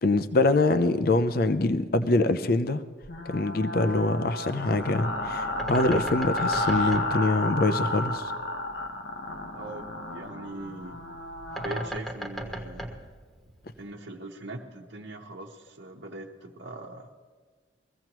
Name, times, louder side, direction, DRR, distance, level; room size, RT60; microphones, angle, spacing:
voice 1, 0.0-2.8 3.3-8.3, left 2 dB, 55° left, 11 dB, 0.6 m, -24 dB
sound 1, 3.0-11.9, left 2 dB, 75° left, 1.2 m, -32 dB
Bird, 4.8-13.9, right 1 dB, ahead, 1.1 m, -39 dB
voice 2, 9.5-11.0 11.6-13.0 13.8-17.1, right 2 dB, 80° right, -3 dB, 1.1 m, -41 dB
22.5 x 15.5 x 3.0 m, 1.5 s
head